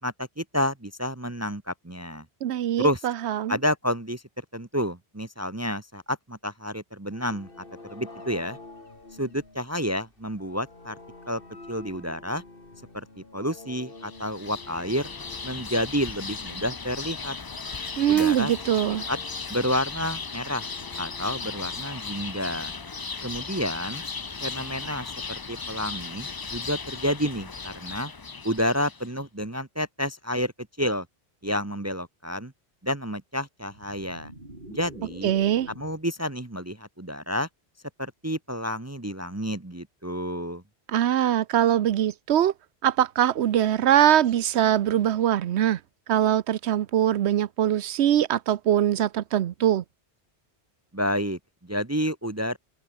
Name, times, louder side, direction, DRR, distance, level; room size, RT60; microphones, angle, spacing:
voice 1, 0.0-2.2 2.8-3.1 3.5-4.2 4.5-7.5 7.9-8.6 9.2-11.0 11.3-11.4 11.7-12.4 12.9-15.1 15.4-17.3 18.1-18.5 18.8-19.2 19.5-20.7 21.0-22.7 23.2-24.0 24.4-28.1 28.4-30.5 30.8-31.1 31.4-32.5 32.8-34.3 34.7-35.3 35.7-37.5 38.0-40.6 50.9-52.6, equal, 15° right, 1.0 m, -30 dB
voice 2, 2.4-3.6 18.0-19.0 35.2-35.7 40.9-42.5 42.8-45.8 46.1-49.8, right 11 dB, 80° right, 1.0 m, -22 dB
sound 1, 7.1-23.0, left 2 dB, 55° left, 3.6 m, -49 dB
sound 2, 14.0-29.1, left 4 dB, 30° left, 0.5 m, -36 dB
sound 3, 33.6-36.1, right 1 dB, 50° right, 5.3 m, -45 dB
omnidirectional pair, 1.1 m